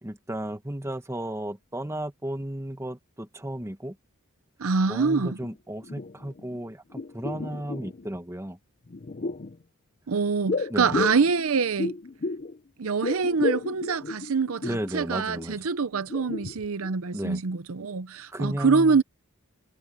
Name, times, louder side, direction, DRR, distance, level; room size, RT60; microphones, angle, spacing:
voice 1, 0.0-4.0 4.9-8.6 10.7-11.0 14.6-15.7 17.1-17.4 18.3-19.0, right 1 dB, 10° right, 1.4 m, -34 dB
voice 2, 4.6-5.4 10.1-12.0 12.8-19.0, right 5 dB, 65° right, 0.7 m, -25 dB
sound 1, 5.4-5.5 5.8-6.6 6.9-8.1 8.9-9.6 10.5-12.6 12.8-14.9 15.4-15.5 15.9-16.9 17.2-17.3, left 3 dB, 35° left, 0.5 m, -32 dB
head